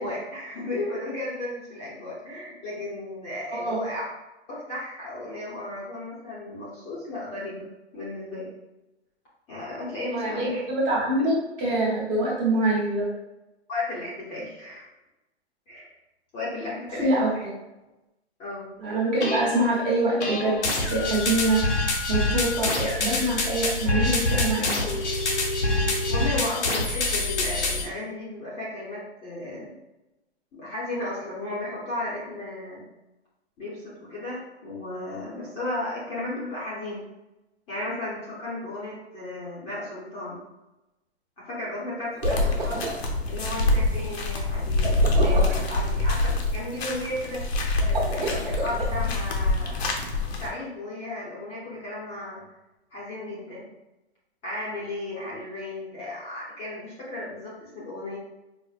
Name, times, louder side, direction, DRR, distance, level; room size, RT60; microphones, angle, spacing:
voice 1, 0.0-4.0 4.5-7.7 7.9-8.5 9.5-10.6 13.7-14.8 15.7-15.9 16.3-17.1 18.4-18.7 26.1-29.7 30.5-32.8 33.6-37.1 37.7-40.4 41.4-42.9 43.3-47.4 47.9-50.0 50.4-52.4 52.9-53.7 54.4-58.2, left 2 dB, 15° left, -8 dB, 0.7 m, -34 dB
voice 2, 3.5-3.8 10.1-13.1 17.0-17.5 18.8-20.6 20.9-25.0, right 2 dB, 25° right, -5 dB, 0.9 m, -25 dB
sound 1, 19.2-19.6 20.2-27.8, left 2 dB, 85° left, 1.0 m, -26 dB
sound 2, 42.1-43.0 44.8-45.7 47.8-48.9, right 2 dB, 60° right, 1.0 m, -30 dB
sound 3, 42.2-50.5, left 2 dB, 65° left, 0.8 m, -25 dB
4.7 x 2.0 x 2.4 m, 0.98 s
hypercardioid pair, 140°, 34 cm